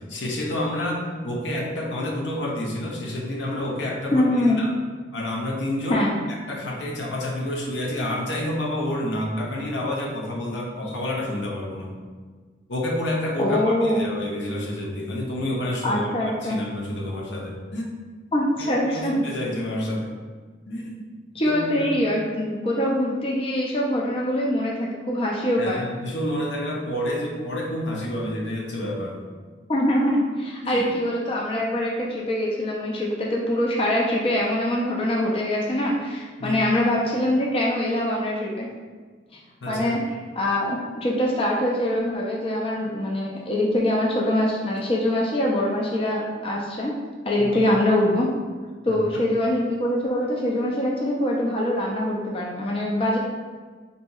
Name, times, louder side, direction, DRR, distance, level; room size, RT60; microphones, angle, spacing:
voice 1, 0.0-4.7 5.1-6.0 6.5-11.9 12.7-17.9 18.6-20.2 20.7-21.1 21.5-22.0 25.6-29.2 30.6-30.9 36.4-36.6 39.6-39.9 47.5-47.6 48.9-49.2, left 1 dB, 85° left, -1 dB, 0.6 m, -29 dB
voice 2, 4.1-4.6 5.9-6.1 13.4-14.0 15.8-16.6 18.3-19.2 21.3-25.9 29.7-38.7 39.7-40.0 40.4-46.9 47.2-48.3 48.8-53.2, left 1 dB, 30° left, -2 dB, 0.3 m, -23 dB
4.0 x 2.7 x 2.3 m, 1.5 s
head